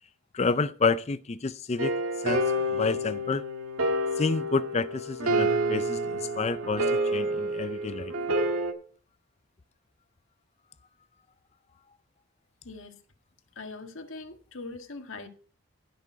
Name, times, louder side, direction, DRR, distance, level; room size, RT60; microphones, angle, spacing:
voice 1, 0.3-1.9 2.2-2.4 2.7-3.4 4.2-8.1, left 4 dB, 30° left, 0.4 m, -29 dB
sound 1, 1.8-8.7, right 1 dB, 80° right, 1.7 m, -28 dB
voice 2, 12.6-13.0 13.6-15.3, left 3 dB, 65° left, 1.7 m, -41 dB
15.5 x 6.1 x 4.6 m
head